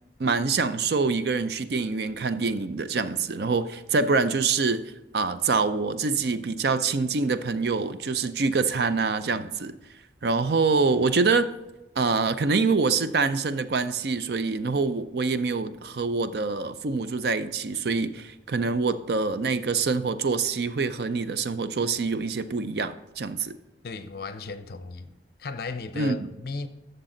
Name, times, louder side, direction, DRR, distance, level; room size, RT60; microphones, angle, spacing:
voice 1, 0.2-4.8 5.1-9.7 10.2-11.5 12.0-23.6 25.9-26.3, right 4 dB, 65° right, 0.5 m, -25 dB
voice 2, 23.8-25.1 25.4-26.7, left 3 dB, 60° left, 0.6 m, -35 dB
11.5 x 6.8 x 3.8 m
head